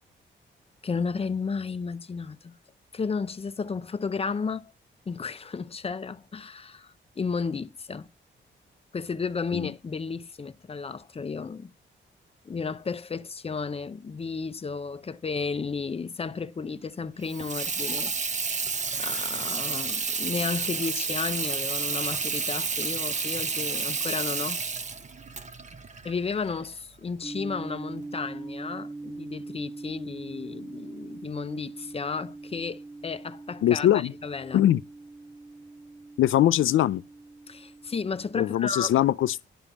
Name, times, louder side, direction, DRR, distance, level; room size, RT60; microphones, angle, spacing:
voice 1, 0.8-2.6 2.9-4.7 5.1-8.1 8.9-11.7 12.4-18.1 19.0-24.6 26.0-34.6 37.5-39.0, left 5 dB, 30° left, 0.7 m, -33 dB
Water tap faucet / Sink (filling or washing), 17.2-26.8, right 4 dB, 35° right, 0.9 m, -30 dB
sound 1, 27.2-38.6, right 3 dB, 20° right, 0.6 m, -42 dB
voice 2, 33.6-34.1 34.5-34.8 36.2-37.0 38.3-39.5, left 12 dB, 85° left, 0.5 m, -22 dB
11.5 x 5.2 x 7.2 m
cardioid pair, 95°, 20 cm